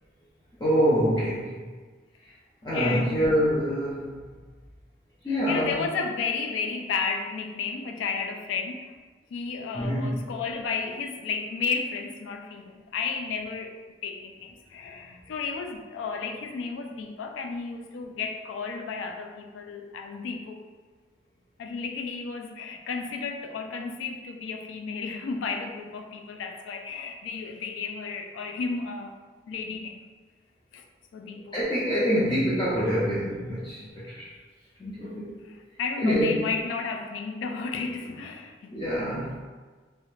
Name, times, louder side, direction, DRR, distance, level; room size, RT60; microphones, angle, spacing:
voice 1, 0.6-1.6 2.6-4.1 5.2-5.8 9.7-10.1 31.3-34.3 34.8-35.3 36.0-36.4 38.7-39.4, equal, 20° left, -9 dB, 0.4 m, -25 dB
voice 2, 2.7-3.2 5.3-8.9 9.3-13.8 14.0-20.7 21.6-29.1 29.5-30.0 30.7-30.8 31.1-31.6 35.5-38.8, left 5 dB, 90° left, 4 dB, 0.3 m, -33 dB
2.4 x 2.1 x 3.0 m, 1.4 s
head